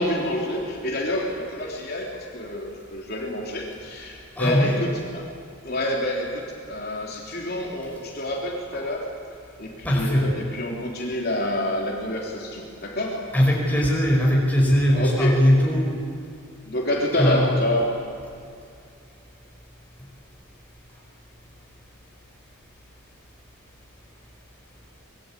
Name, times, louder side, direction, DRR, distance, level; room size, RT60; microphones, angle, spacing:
voice 1, 0.0-5.0 5.6-9.1 9.6-13.2 14.9-15.4 16.6-17.9, left 1 dB, 45° left, -2 dB, 3.6 m, -27 dB
voice 2, 4.4-4.8 9.8-10.3 13.3-16.0 17.1-17.5, equal, 5° left, -2 dB, 5.1 m, -20 dB
25.0 x 22.0 x 8.6 m, 2.4 s
head